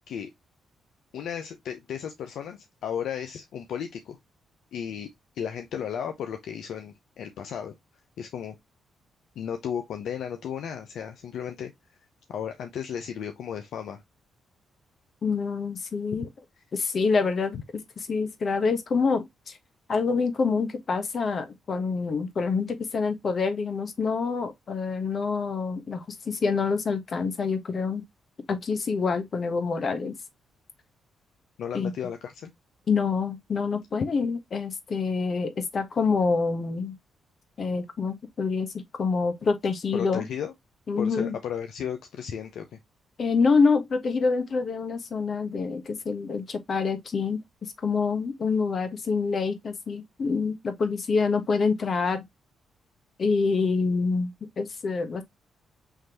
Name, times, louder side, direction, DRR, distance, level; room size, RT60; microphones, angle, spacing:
voice 1, 1.1-4.2 4.7-5.1 5.3-7.8 8.2-8.6 9.4-11.7 12.3-14.0 31.6-32.5 39.9-40.5 41.0-42.8, left 8 dB, 75° left, 0.6 m, -34 dB
voice 2, 15.2-16.3 16.7-17.6 18.1-19.6 19.9-28.0 28.5-30.2 31.7-31.9 32.9-36.9 37.6-38.7 39.0-40.2 40.9-41.4 43.2-47.4 47.8-52.2 53.2-55.2, left 4 dB, 55° left, 1.3 m, -26 dB
5.8 x 3.2 x 2.9 m
supercardioid pair, 55°, 0 cm